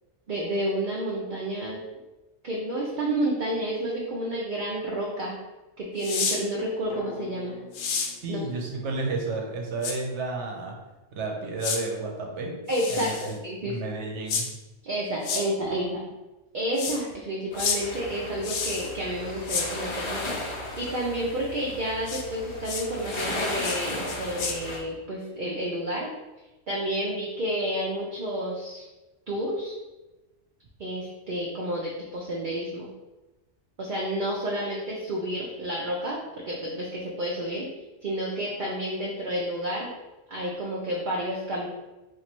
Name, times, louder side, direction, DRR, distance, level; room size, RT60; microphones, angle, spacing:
voice 1, 0.3-1.8 2.4-5.4 5.8-7.6 8.3-8.5 12.7-13.8 14.8-16.0 16.5-26.1 26.7-28.9 29.3-29.7 30.8-32.9 33.8-37.7 38.0-39.9 40.3-41.7, right 1 dB, 50° right, -4 dB, 0.6 m, -30 dB
sound 1, 6.0-6.4 7.7-8.1 9.8-9.9 11.6-11.8 12.7-13.3 14.3-14.4 15.2-15.4 16.8-17.0 17.6-17.8 18.4-18.9 19.5-19.7 22.1-22.2 22.6-22.8 23.6-23.8 24.1-24.5, left 5 dB, 85° left, 1.0 m, -29 dB
sound 2, 6.9-10.9 11.1-11.2, left 4 dB, 60° left, 0.8 m, -48 dB
voice 2, 8.2-10.8 11.1-12.6 12.9-13.4 13.6-14.5, right 3 dB, 70° right, 0 dB, 1.0 m, -32 dB
sound 3, 17.5-24.8, left 1 dB, 40° left, 0.4 m, -35 dB
3.0 x 2.6 x 4.4 m, 1.1 s
omnidirectional pair, 1.3 m